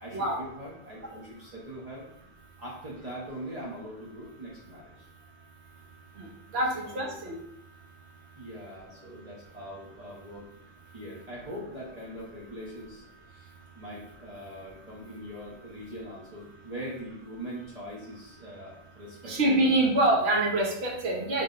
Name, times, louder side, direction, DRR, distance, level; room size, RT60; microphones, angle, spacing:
voice 1, 0.0-2.1 2.6-5.1 5.4-5.5 6.8-7.2 8.4-10.5 10.9-19.6, equal, 40° right, -5 dB, 0.8 m, -42 dB
voice 2, 6.5-7.3 19.2-21.4, right 1 dB, 65° right, 0 dB, 1.0 m, -25 dB
3.7 x 2.1 x 3.7 m, 0.79 s
omnidirectional pair, 1.2 m